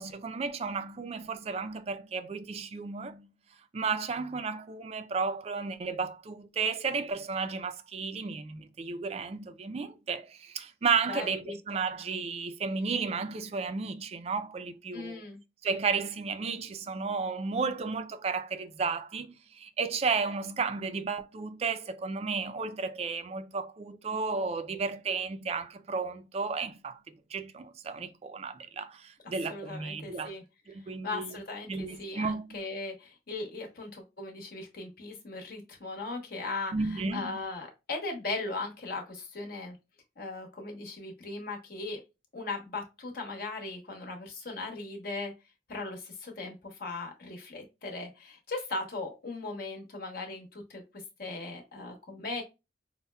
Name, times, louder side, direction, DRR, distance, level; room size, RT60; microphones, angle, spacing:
voice 1, 0.0-3.3 3.7-15.2 15.6-27.0 27.3-30.3 30.7-31.4 31.7-32.6 36.7-37.4, right 4 dB, 35° right, 0.3 m, -33 dB
voice 2, 11.1-11.6 14.9-15.4 29.2-30.4 31.0-39.8 40.2-42.0 42.3-45.3 45.7-50.8 51.2-52.4, left 3 dB, 55° left, 1.0 m, -38 dB
5.3 x 2.1 x 2.2 m
head